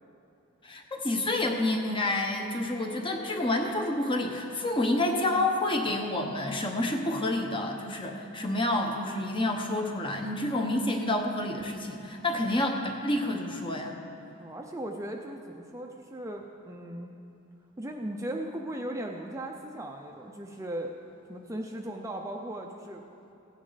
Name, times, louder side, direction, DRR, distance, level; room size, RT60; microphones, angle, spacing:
voice 1, 0.6-14.0, left 1 dB, 25° left, 3 dB, 0.9 m, -29 dB
voice 2, 14.4-17.1 17.8-20.9 21.3-23.0, right 1 dB, 15° right, 1 dB, 0.6 m, -37 dB
16.0 x 9.7 x 4.0 m, 3.0 s
head